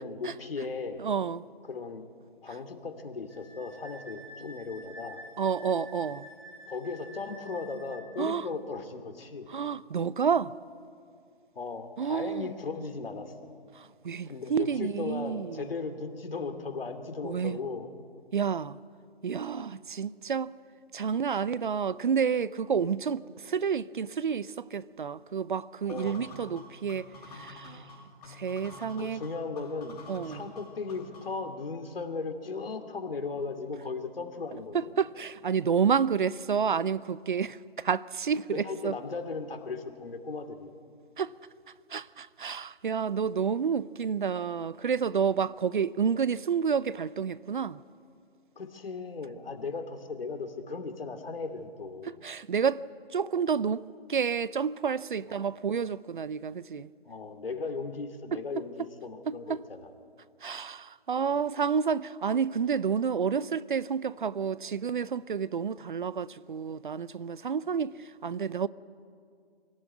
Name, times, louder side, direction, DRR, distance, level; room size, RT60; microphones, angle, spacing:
voice 1, 0.0-1.0 1.7-2.1 2.4-5.2 6.7-9.5 11.5-13.5 14.3-17.9 25.8-26.2 28.9-30.0 30.3-34.9 38.5-40.7 48.6-52.1 55.3-55.4 57.0-59.9, left 4 dB, 65° left, 2.6 m, -37 dB
voice 2, 1.0-1.4 5.4-6.3 8.2-8.5 9.5-10.5 12.0-12.5 13.8-15.7 17.2-17.6 18.3-18.8 19.2-20.5 20.9-27.1 27.3-27.9 28.3-29.2 30.1-30.4 34.7-38.9 41.2-41.3 41.9-47.8 52.2-52.8 53.1-56.9 58.3-58.4 59.3-59.6 60.4-68.7, right 6 dB, 50° right, 0.6 m, -30 dB
Wind instrument woodwind instrument, 3.3-8.1, equal, ahead, 5.2 m, -49 dB
sound 1, 25.9-31.5, left 2 dB, 40° left, 5.6 m, -48 dB
25.0 x 17.0 x 9.5 m
figure-of-eight pair, 155°, 31 cm